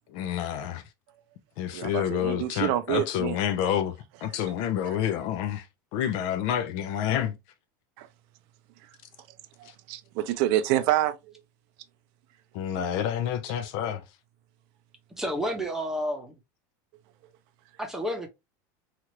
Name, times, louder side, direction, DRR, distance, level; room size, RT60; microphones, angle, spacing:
voice 1, 0.1-0.8 1.6-3.9 4.2-5.7 5.9-7.4 12.5-14.0, left 10 dB, 55° left, 0.5 m, -28 dB
voice 2, 1.7-3.4 8.0-8.1 9.6-11.1, right 13 dB, 55° right, 0.4 m, -27 dB
voice 3, 15.2-16.4 17.8-18.3, equal, 5° right, 0.8 m, -30 dB
2.9 x 2.5 x 2.9 m
supercardioid pair, 140°, 10 cm